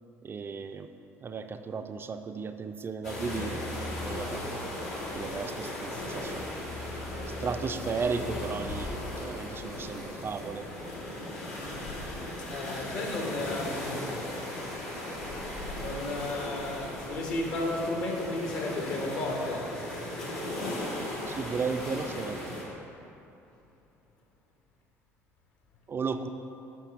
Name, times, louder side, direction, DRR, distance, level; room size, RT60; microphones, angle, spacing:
voice 1, 0.2-0.9 1.2-3.6 3.9-4.4 5.1-6.5 7.4-10.7 21.3-22.4 25.9-26.3, right 5 dB, 30° right, 7 dB, 0.4 m, -34 dB
sound 1, 3.0-22.6, left 1 dB, 80° left, 1.5 m, -37 dB
voice 2, 12.4-14.0 15.8-19.6, left 2 dB, 60° left, -1 dB, 1.4 m, -33 dB
8.1 x 5.6 x 3.5 m, 2.8 s
hypercardioid pair, 60°, 7 cm